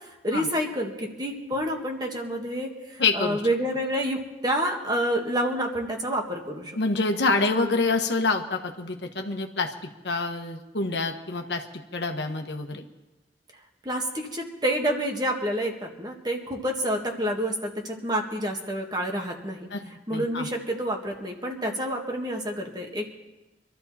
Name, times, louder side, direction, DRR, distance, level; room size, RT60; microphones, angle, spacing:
voice 1, 0.2-6.7 7.5-7.7 13.9-19.7 20.1-23.2, equal, 25° right, 1 dB, 1.8 m, -28 dB
voice 2, 3.0-3.4 6.7-9.7 10.0-11.6 11.9-12.8 19.7-20.5, left 3 dB, 70° left, 4 dB, 1.3 m, -27 dB
25.0 x 13.0 x 4.2 m, 1.1 s
head